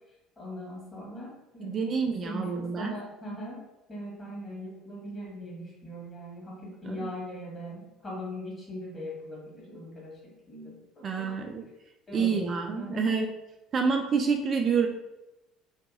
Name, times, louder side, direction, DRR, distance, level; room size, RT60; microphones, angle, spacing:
voice 1, 0.4-3.6 3.9-11.3 12.1-12.5 12.7-13.0, equal, 30° left, -4 dB, 1.4 m, -40 dB
voice 2, 1.6-2.9 6.8-7.1 11.0-11.6 12.1-13.3 13.7-14.9, right 5 dB, 40° right, 3 dB, 0.3 m, -27 dB
2.7 x 2.6 x 2.4 m, 0.94 s
figure-of-eight pair, 60°, 0 cm